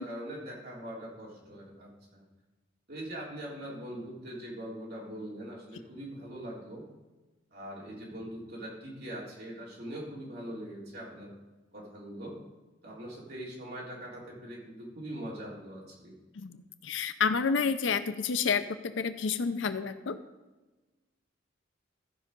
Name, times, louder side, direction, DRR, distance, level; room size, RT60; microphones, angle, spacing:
voice 1, 0.0-2.3 2.9-6.8 7.5-11.3 11.7-12.4 12.8-16.1, right 1 dB, 55° right, -5 dB, 3.5 m, -42 dB
voice 2, 16.8-20.2, left 5 dB, 80° left, 11 dB, 0.5 m, -29 dB
14.5 x 5.4 x 5.2 m, 1.2 s
head